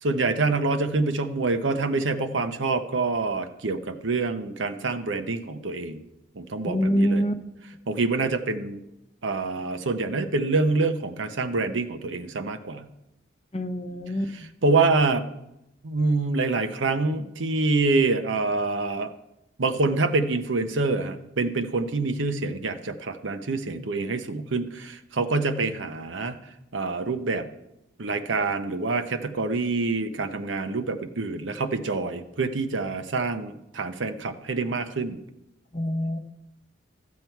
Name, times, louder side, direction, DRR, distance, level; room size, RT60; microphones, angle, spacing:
voice 1, 0.0-6.0 6.4-7.2 7.9-8.8 9.2-12.9 14.3-15.2 15.8-19.1 19.6-26.4 26.7-27.5 28.0-35.2, right 3 dB, 85° right, 9 dB, 0.8 m, -26 dB
voice 2, 6.6-7.3 13.5-14.3 35.7-36.2, equal, 30° left, 8 dB, 0.7 m, -25 dB
14.0 x 7.5 x 4.5 m, 0.88 s
head